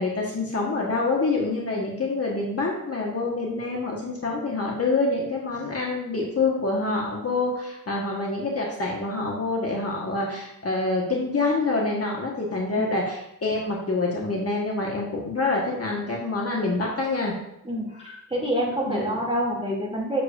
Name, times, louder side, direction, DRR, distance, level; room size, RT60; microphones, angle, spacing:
voice 1, 0.0-17.3 18.0-18.1 18.9-19.0, left 3 dB, 40° left, -2 dB, 1.3 m, -26 dB
voice 2, 17.6-20.2, equal, 15° right, -4 dB, 2.4 m, -27 dB
7.5 x 6.8 x 2.5 m, 0.80 s
wide cardioid pair, 105°, 36 cm